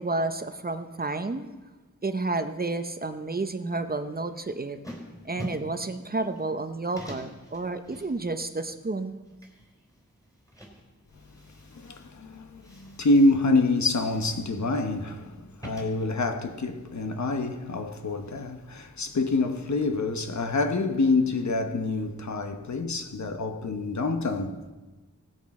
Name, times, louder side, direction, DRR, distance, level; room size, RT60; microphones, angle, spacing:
voice 1, 0.0-1.5 2.0-4.8 5.2-9.2, right 3 dB, 30° right, 0.7 m, -30 dB
sound 1, 4.1-18.5, equal, 10° left, 3.1 m, -46 dB
voice 2, 11.7-24.7, left 2 dB, 65° left, 1.1 m, -26 dB
16.5 x 10.0 x 4.3 m
wide cardioid pair, 85°, 31 cm